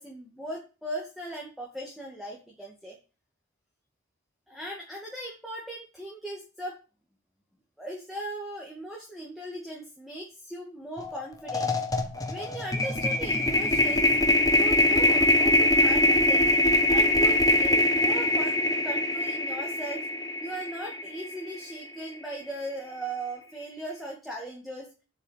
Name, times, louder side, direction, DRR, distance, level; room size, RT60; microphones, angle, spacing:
voice 1, 0.0-3.0 4.5-6.8 7.8-11.7 12.3-14.1 14.5-16.5 16.9-20.1 20.4-24.9, right 1 dB, ahead, -2 dB, 2.1 m, -38 dB
sound 1, 11.0-11.1 11.4-21.7, left 1 dB, 15° left, 1.4 m, -23 dB
8.1 x 7.1 x 7.4 m, 0.32 s
head